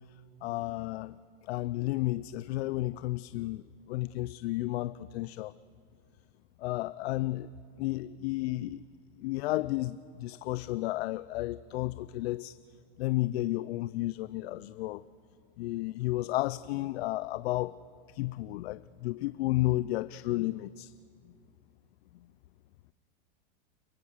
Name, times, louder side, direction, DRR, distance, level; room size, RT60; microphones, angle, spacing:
voice 1, 0.4-1.2 1.4-5.5 6.6-7.5 7.8-8.8 9.2-12.6 13.0-15.0 15.6-17.8 18.1-20.9, left 17 dB, 75° left, 16 dB, 0.5 m, -32 dB
30.0 x 16.5 x 6.4 m, 2.3 s
supercardioid pair, 150°, 32 cm